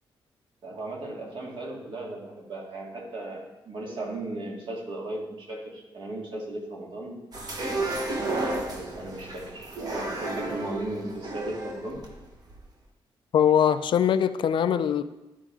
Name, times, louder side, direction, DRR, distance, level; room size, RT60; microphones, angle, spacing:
voice 1, 0.6-7.2 8.5-12.0, right 2 dB, 60° right, -2 dB, 1.9 m, -36 dB
sound 1, 7.3-12.6, right 2 dB, 45° right, 1.2 m, -32 dB
voice 2, 13.3-15.0, left 9 dB, 60° left, 11 dB, 0.4 m, -22 dB
12.5 x 4.5 x 3.7 m, 1.0 s
wide cardioid pair, 140°, 10 cm